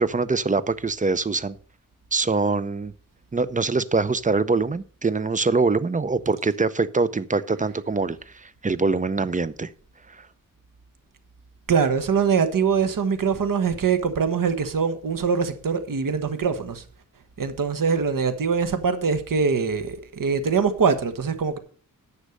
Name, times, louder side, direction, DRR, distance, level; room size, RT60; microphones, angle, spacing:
voice 1, 0.0-1.6 2.1-2.9 3.3-9.7 10.1-10.2, right 4 dB, 25° right, 0.6 m, -24 dB
voice 2, 11.7-16.8 17.4-21.6, right 6 dB, 75° right, 1.4 m, -23 dB
10.0 x 6.5 x 6.6 m
wide cardioid pair, 105°, 33 cm